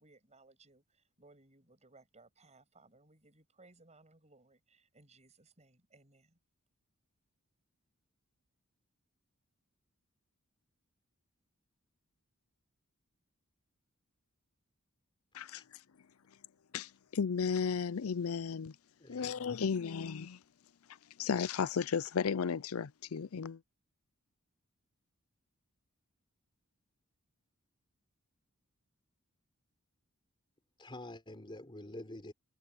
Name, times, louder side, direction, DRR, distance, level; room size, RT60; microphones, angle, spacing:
voice 1, 0.0-6.4, right 2 dB, 30° right, 7.2 m, -63 dB
voice 2, 16.7-18.8 19.1-20.4 21.2-23.6, left 6 dB, 70° left, 0.5 m, -34 dB
voice 3, 19.0-19.4 30.8-32.3, left 1 dB, 25° left, 4.0 m, -47 dB
head